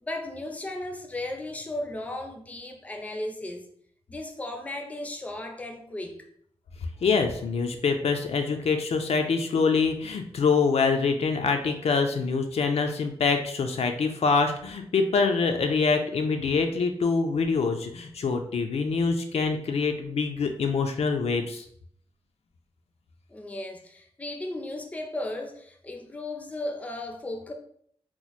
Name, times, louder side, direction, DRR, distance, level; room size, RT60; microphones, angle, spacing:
voice 1, 0.0-3.7 4.1-6.3 23.3-27.5, left 1 dB, 15° left, 3 dB, 0.4 m, -35 dB
voice 2, 7.0-21.6, left 4 dB, 75° left, 5 dB, 0.4 m, -25 dB
2.9 x 2.1 x 4.0 m, 0.64 s
wide cardioid pair, 145°, 11 cm